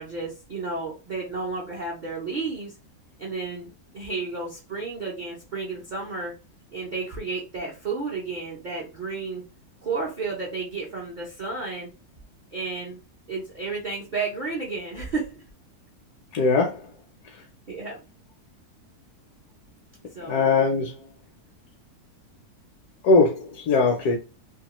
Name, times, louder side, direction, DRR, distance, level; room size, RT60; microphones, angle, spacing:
voice 1, 0.0-2.7 3.2-6.3 6.7-9.4 9.8-11.9 12.5-13.0 13.3-15.4 16.4-16.5 17.7-18.0 20.1-20.4, right 4 dB, 55° right, 0.5 m, -32 dB
voice 2, 16.3-16.8 20.3-21.1 23.0-24.2, left 3 dB, 75° left, 1.1 m, -21 dB
2.8 x 2.3 x 2.9 m
omnidirectional pair, 1.7 m